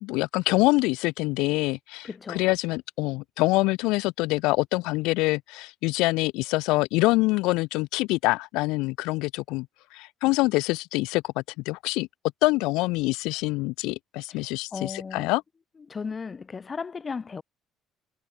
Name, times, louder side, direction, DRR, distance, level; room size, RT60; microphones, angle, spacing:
voice 1, 0.0-9.7 9.9-12.1 12.4-15.4, left 22 dB, 80° left, 0.3 m, -25 dB
voice 2, 2.0-2.5 14.3-15.3 15.9-17.4, left 5 dB, 35° left, 2.2 m, -36 dB
supercardioid pair, 70°, 0 cm